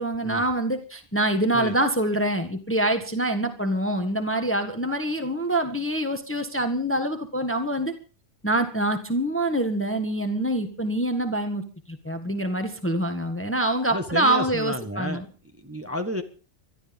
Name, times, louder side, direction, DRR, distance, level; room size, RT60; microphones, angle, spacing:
voice 1, 0.0-7.9 8.4-11.6 11.9-15.2, right 1 dB, 10° left, 7 dB, 1.5 m, -25 dB
voice 2, 13.9-15.3 15.6-16.2, equal, 10° right, 5 dB, 1.6 m, -31 dB
18.5 x 12.5 x 5.4 m, 0.38 s
omnidirectional pair, 1.4 m